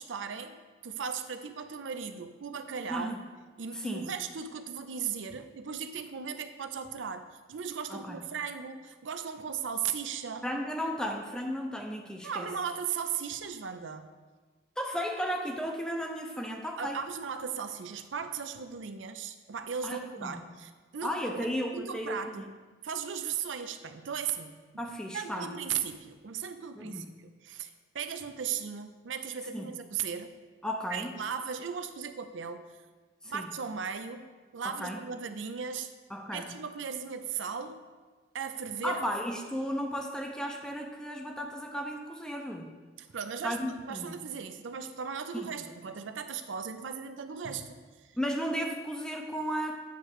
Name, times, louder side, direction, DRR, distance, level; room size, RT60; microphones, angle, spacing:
voice 1, 0.0-3.1 3.6-10.5 12.2-14.1 16.8-22.5 22.8-24.9 25.1-30.3 30.9-32.7 33.2-34.3 34.5-35.9 36.3-37.8 38.3-39.0 43.0-48.1, right 7 dB, 90° right, 9 dB, 0.5 m, -37 dB
voice 2, 2.9-3.2 3.7-4.1 7.9-8.2 10.4-12.5 14.8-17.0 19.8-20.4 21.0-22.5 24.8-25.5 26.8-27.1 29.5-29.7 30.6-31.1 33.2-33.5 34.6-35.0 36.1-36.6 38.8-42.7 43.4-44.2 45.3-45.5 48.2-49.8, equal, 5° left, 2 dB, 0.5 m, -34 dB
9.4 x 3.2 x 6.5 m, 1.4 s
head